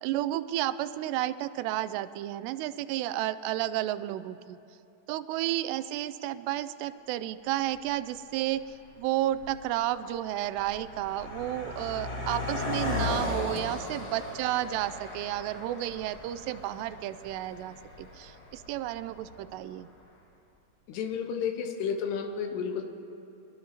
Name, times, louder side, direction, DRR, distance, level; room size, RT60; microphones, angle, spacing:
voice 1, 0.0-4.6 5.1-19.9, right 14 dB, 85° right, 14 dB, 2.7 m, -32 dB
Car passing by, 7.7-7.8 8.6-8.9 9.2-19.6, left 2 dB, 40° left, 1.3 m, -37 dB
voice 2, 20.9-22.8, left 6 dB, 85° left, 5 dB, 3.1 m, -31 dB
22.5 x 21.5 x 2.9 m, 2.8 s
omnidirectional pair, 4.8 m